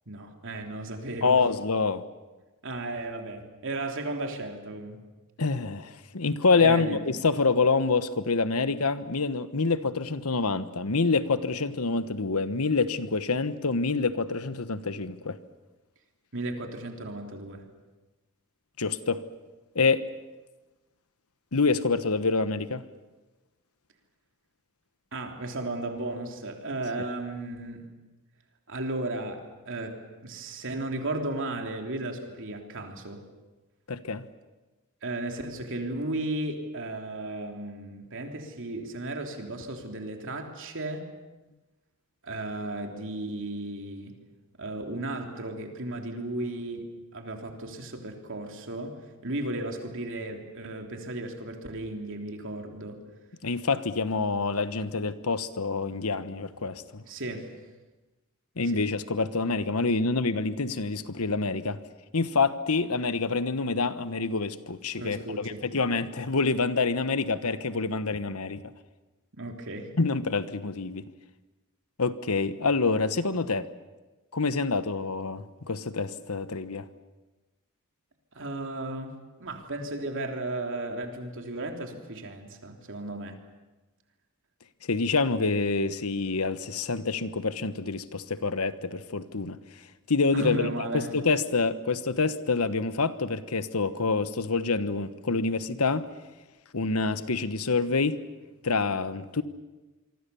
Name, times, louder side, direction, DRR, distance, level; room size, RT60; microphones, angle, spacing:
voice 1, 0.1-1.5 2.6-5.0 6.6-7.0 16.3-17.7 25.1-27.9 28.7-33.2 35.0-41.1 42.2-44.2 44.6-49.0 49.2-53.0 57.0-57.5 58.7-58.8 65.0-65.6 69.4-69.9 78.3-83.4 90.3-91.1, right 2 dB, 60° right, 3 dB, 3.4 m, -35 dB
voice 2, 1.2-2.0 5.4-15.4 18.8-19.2 19.7-20.0 21.5-22.8 33.9-34.2 53.4-57.0 58.6-61.8 62.1-65.2 65.6-68.6 70.0-71.1 72.0-73.7 74.3-76.9 84.9-89.6 90.1-90.7 90.9-96.0 96.7-98.2 98.6-99.4, left 4 dB, 80° left, 12 dB, 1.2 m, -26 dB
26.5 x 23.5 x 7.1 m, 1.1 s
head